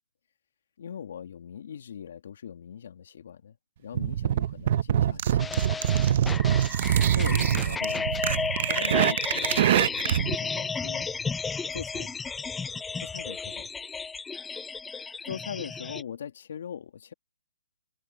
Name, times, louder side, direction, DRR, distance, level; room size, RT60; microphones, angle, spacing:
voice 1, 0.8-5.7 7.1-11.1 11.7-12.1 13.0-13.7 15.2-17.1, left 8 dB, 60° left, 2.5 m, -41 dB
sound 1, 3.9-10.4, right 10 dB, 45° right, 0.9 m, -24 dB
sound 2, 5.4-16.0, left 5 dB, 5° left, 0.3 m, -33 dB
hypercardioid pair, 160°, 0 cm